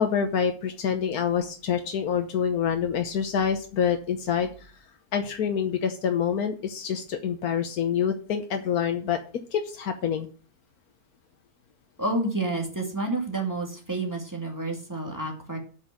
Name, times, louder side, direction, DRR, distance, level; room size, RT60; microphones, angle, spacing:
voice 1, 0.0-4.5 5.1-9.2 9.5-10.3, left 7 dB, 85° left, 6 dB, 1.5 m, -26 dB
voice 2, 12.0-15.6, right 2 dB, 10° right, 1 dB, 2.3 m, -29 dB
8.2 x 6.2 x 7.6 m, 0.40 s
omnidirectional pair, 1.6 m